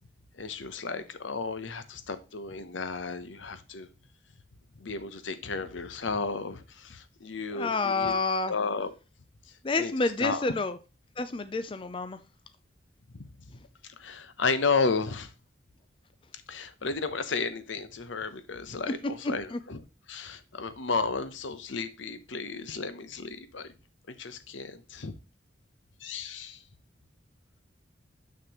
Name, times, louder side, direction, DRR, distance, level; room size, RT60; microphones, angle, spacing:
voice 1, 0.4-3.9 4.8-8.1 8.5-8.9 9.8-9.9 10.2-10.4 14.0-15.3 16.5-19.8 20.1-23.7 24.1-25.1 26.0-26.6, left 4 dB, 85° left, 0.9 m, -33 dB
voice 2, 7.5-8.5 9.6-10.8 11.2-12.2 13.5-13.6 19.2-19.6, left 3 dB, 25° left, 0.4 m, -29 dB
6.7 x 6.4 x 3.0 m
head